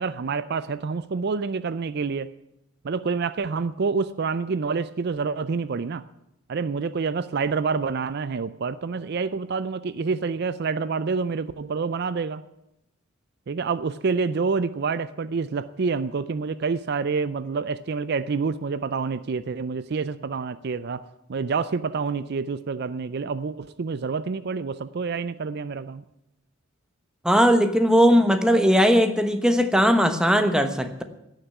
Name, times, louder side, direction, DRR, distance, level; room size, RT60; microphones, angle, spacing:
voice 1, 0.0-2.3 2.8-6.0 6.5-12.4 13.5-21.0 21.3-26.0, right 4 dB, 50° right, 15 dB, 0.4 m, -27 dB
voice 2, 27.2-31.0, equal, 5° right, 7 dB, 1.1 m, -19 dB
16.5 x 6.5 x 9.4 m, 0.87 s
head